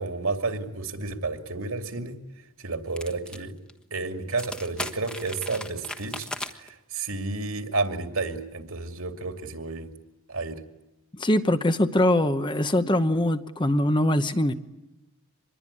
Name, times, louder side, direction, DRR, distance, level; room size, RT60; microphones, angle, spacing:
voice 1, 0.0-2.2 2.6-3.5 3.9-6.3 6.6-9.9 10.3-10.6, right 3 dB, 70° right, 2.5 m, -31 dB
sound 1, 3.0-3.4 3.7-3.8 4.3-6.7, left 1 dB, 5° left, 1.3 m, -36 dB
voice 2, 11.1-14.5, left 1 dB, 20° left, 0.9 m, -22 dB
25.5 x 21.5 x 9.8 m
head